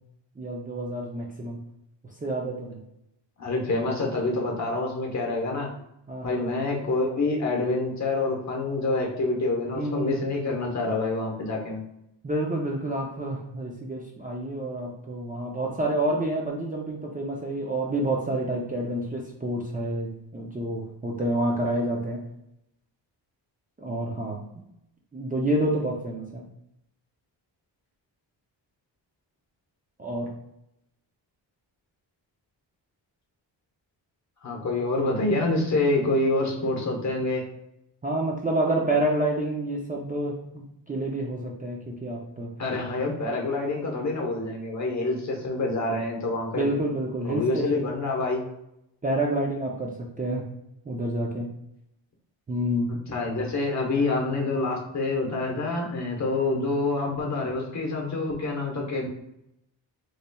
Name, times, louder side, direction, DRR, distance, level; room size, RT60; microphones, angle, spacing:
voice 1, 0.4-1.6 2.2-2.8 6.1-6.5 9.7-10.2 12.2-22.2 23.8-24.4 25.1-26.4 30.0-30.3 38.0-42.5 46.5-47.7 49.0-50.4 50.9-51.5 52.5-52.9, right 1 dB, 20° right, -2 dB, 0.5 m, -28 dB
voice 2, 3.4-5.7 6.2-11.8 34.4-37.4 42.6-46.7 47.2-48.4 53.1-59.1, left 2 dB, 35° left, 0 dB, 1.0 m, -27 dB
4.0 x 3.2 x 2.2 m, 0.82 s
cardioid pair, 100°, 45 cm